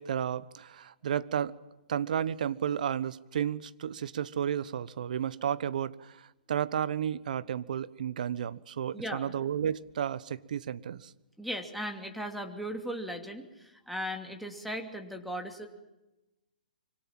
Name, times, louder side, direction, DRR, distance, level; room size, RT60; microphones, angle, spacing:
voice 1, 0.0-1.6 1.9-11.1, right 9 dB, 60° right, 1.1 m, -32 dB
voice 2, 8.9-9.3 11.4-15.7, equal, ahead, 2.9 m, -37 dB
25.0 x 25.0 x 7.6 m
hypercardioid pair, 125°, 5 cm